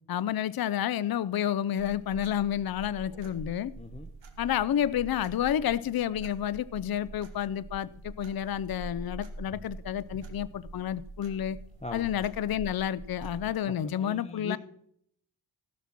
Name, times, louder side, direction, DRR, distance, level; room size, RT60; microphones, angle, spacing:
voice 1, 0.1-3.7 4.4-11.6 11.9-14.6, left 10 dB, 50° left, 17 dB, 0.5 m, -30 dB
sound 1, 1.8-13.5, right 2 dB, 65° right, 1.8 m, -45 dB
voice 2, 3.8-4.1 11.8-12.1 13.7-14.6, left 2 dB, 15° left, 5 dB, 0.9 m, -40 dB
17.0 x 5.9 x 5.9 m, 0.71 s
wide cardioid pair, 90°, 47 cm